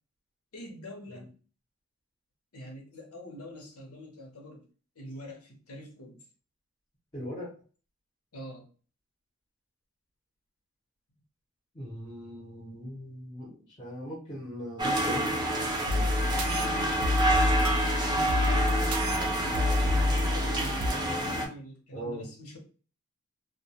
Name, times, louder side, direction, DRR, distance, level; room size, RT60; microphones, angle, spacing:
voice 1, 0.5-1.3 2.5-4.6 5.0-6.2 8.3-8.7 16.4-17.2 18.1-22.6, left 1 dB, 90° left, 1 dB, 0.8 m, -44 dB
voice 2, 7.1-7.5 11.7-15.4 15.8-16.1 21.9-22.2, equal, 20° left, -4 dB, 0.7 m, -39 dB
sound 1, 14.8-21.5, right 1 dB, 20° right, 0.5 m, -28 dB
sound 2, 15.9-20.9, left 2 dB, 75° right, 0.4 m, -28 dB
2.2 x 2.2 x 2.8 m, 0.38 s
head